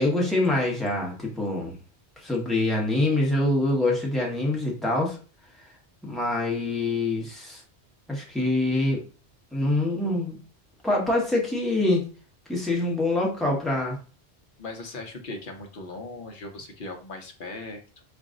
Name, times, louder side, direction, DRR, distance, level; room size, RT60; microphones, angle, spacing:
voice 1, 0.0-1.7 2.2-5.2 6.0-7.6 8.1-9.0 9.5-10.4 10.8-12.0 12.5-14.0, left 2 dB, ahead, -2 dB, 1.1 m, -25 dB
voice 2, 14.6-18.0, left 2 dB, 55° left, 4 dB, 0.9 m, -38 dB
3.9 x 2.5 x 3.7 m, 0.36 s
omnidirectional pair, 1.1 m